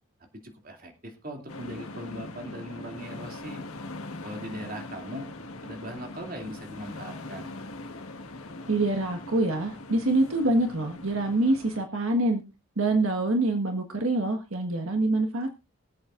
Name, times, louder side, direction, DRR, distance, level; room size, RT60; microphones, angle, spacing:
voice 1, 0.3-3.6 4.2-5.3 5.6-7.5, equal, 40° right, 3 dB, 2.6 m, -40 dB
sound 1, 1.5-11.8, left 2 dB, 85° left, 1.6 m, -41 dB
voice 2, 8.7-12.4 12.8-15.6, right 2 dB, 75° right, 5 dB, 1.6 m, -25 dB
23.0 x 8.0 x 2.5 m, 0.26 s
head